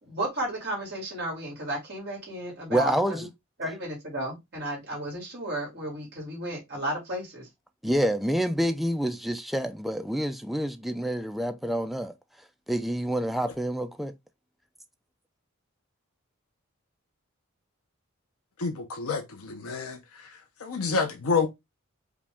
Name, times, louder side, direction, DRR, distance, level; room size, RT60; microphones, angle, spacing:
voice 1, 0.0-3.3 3.6-7.5, right 1 dB, 50° right, 2.1 m, -33 dB
voice 2, 2.7-3.3 7.8-12.1 12.7-14.1, right 1 dB, ahead, 0.3 m, -27 dB
voice 3, 18.6-20.3 20.6-21.5, left 4 dB, 80° left, 0.7 m, -28 dB
5.0 x 2.3 x 3.4 m
head